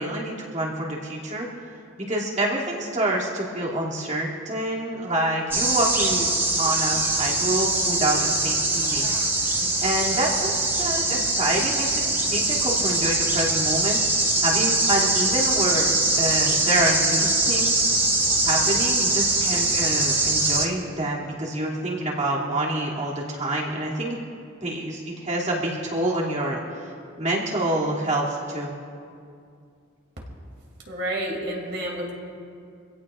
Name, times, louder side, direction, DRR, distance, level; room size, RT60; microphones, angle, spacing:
voice 1, 0.0-1.5 2.0-6.3 6.6-9.1 9.5-17.9 18.4-24.2 24.6-26.9 27.2-28.8, right 1 dB, 35° right, -5 dB, 2.7 m, -27 dB
sound 1, 5.5-20.7, right 2 dB, 10° right, 0.9 m, -23 dB
voice 2, 30.9-32.1, right 1 dB, 55° right, -2 dB, 2.8 m, -29 dB
26.0 x 16.5 x 2.5 m, 2.4 s
head